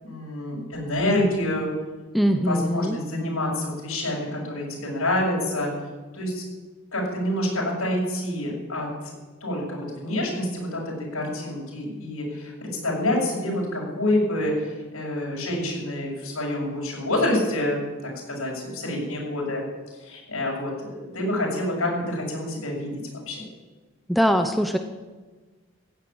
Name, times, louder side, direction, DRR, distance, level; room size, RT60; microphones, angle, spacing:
voice 1, 0.0-1.7 2.3-5.7 6.1-6.4 6.9-9.1 9.4-17.8 18.3-19.6 20.0-22.9 23.3-23.4, left 1 dB, 85° left, -2 dB, 7.0 m, -27 dB
voice 2, 2.1-3.0 24.1-24.8, equal, ahead, 6 dB, 0.8 m, -21 dB
15.5 x 10.5 x 8.8 m, 1.3 s
head